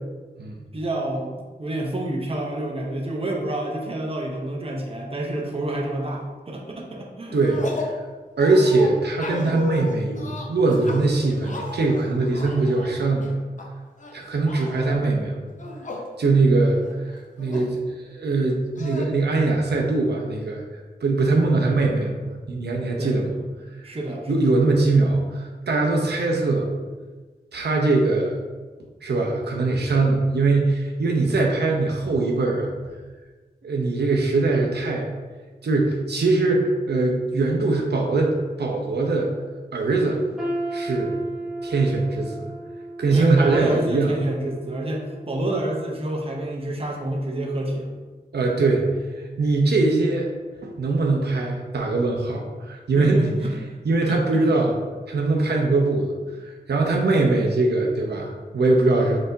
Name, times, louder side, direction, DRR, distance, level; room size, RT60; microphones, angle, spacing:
voice 1, 0.7-7.4 10.3-10.4 14.7-15.2 21.4-21.6 23.0-23.2 23.8-24.4 43.1-47.9 53.0-53.6 54.1-54.2, right 1 dB, 35° right, -1 dB, 0.7 m, -28 dB
sound 1, 7.3-8.0 8.4-13.6 14.0-14.9 15.5-16.1 16.5-16.6 16.8-17.7 18.8-19.0, left 3 dB, 50° left, 0.6 m, -34 dB
voice 2, 7.3-7.9 8.4-13.3 14.1-15.5 16.2-16.8 17.0-20.6 21.0-23.4 24.3-26.7 27.5-28.4 29.0-32.7 33.6-35.1 35.6-38.3 38.6-39.3 39.7-40.2 40.7-41.2 41.6-42.5 43.0-44.1 48.3-48.9 49.4-50.3 50.6-53.3 53.8-54.7 55.1-56.1 56.7-59.2, right 3 dB, 85° right, 0 dB, 0.6 m, -21 dB
sound 2, 40.4-46.3 46.7-47.0 47.7-47.8, right 1 dB, ahead, 1.0 m, -35 dB
4.3 x 4.0 x 2.6 m, 1.3 s
wide cardioid pair, 85°, 17 cm